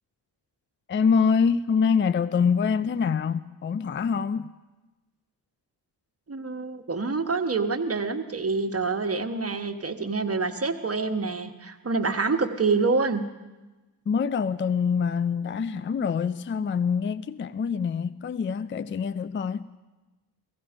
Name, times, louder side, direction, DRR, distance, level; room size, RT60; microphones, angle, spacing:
voice 1, 0.9-4.5 14.1-19.6, left 6 dB, 30° left, 0.4 m, -25 dB
voice 2, 6.3-13.2, right 4 dB, 35° right, 1.3 m, -26 dB
16.5 x 15.0 x 5.1 m
cardioid pair, 55°, 41 cm